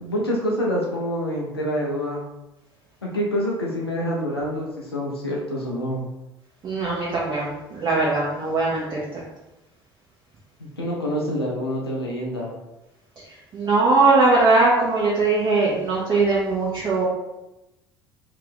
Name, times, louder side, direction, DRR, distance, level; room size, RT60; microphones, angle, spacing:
voice 1, 0.0-2.2 3.0-6.0 10.6-12.5, equal, 85° left, -3 dB, 0.5 m, -26 dB
voice 2, 6.6-9.2 13.5-17.0, right 3 dB, 35° right, -6 dB, 0.9 m, -20 dB
2.8 x 2.5 x 3.6 m, 0.98 s
figure-of-eight pair, 60°, 12 cm